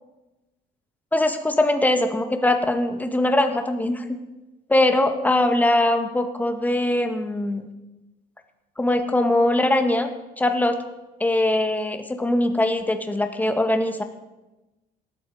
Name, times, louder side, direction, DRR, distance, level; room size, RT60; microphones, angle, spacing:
voice 1, 1.1-4.2 4.7-7.6 8.8-10.1 10.4-10.8 11.2-14.0, left 1 dB, 10° left, 6 dB, 1.8 m, -21 dB
18.0 x 13.0 x 4.9 m, 1.0 s
cardioid pair, 110°, 17 cm